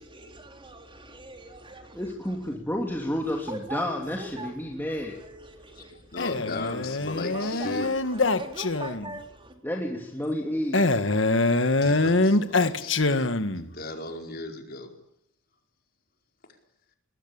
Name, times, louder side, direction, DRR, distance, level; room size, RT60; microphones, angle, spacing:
voice 1, 0.0-2.6 3.2-6.3 6.6-6.8 7.1-9.6, right 2 dB, 25° right, 3.8 m, -42 dB
voice 2, 1.9-5.2 9.6-11.1, left 1 dB, 10° left, 2.8 m, -31 dB
voice 3, 5.8-7.9 11.8-13.3 13.5-14.9, left 2 dB, 50° left, 4.8 m, -37 dB
Male speech man speaking, 6.2-9.2 10.7-13.7, left 2 dB, 70° left, 1.7 m, -24 dB
24.5 x 20.5 x 8.8 m
head